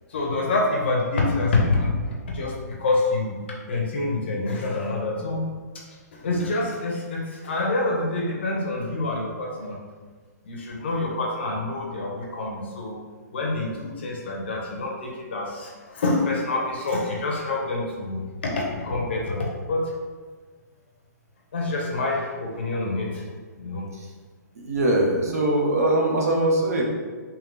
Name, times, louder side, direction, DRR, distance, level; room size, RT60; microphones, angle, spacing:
voice 1, 0.1-3.4 3.7-5.4 6.1-9.8 10.5-13.0 13.3-19.9 21.5-23.2 23.6-23.8, left 2 dB, 35° left, -1 dB, 0.7 m, -26 dB
voice 2, 24.6-26.8, right 1 dB, 55° right, -1 dB, 0.9 m, -22 dB
3.8 x 2.9 x 3.3 m, 1.5 s
hypercardioid pair, 180°, 10 cm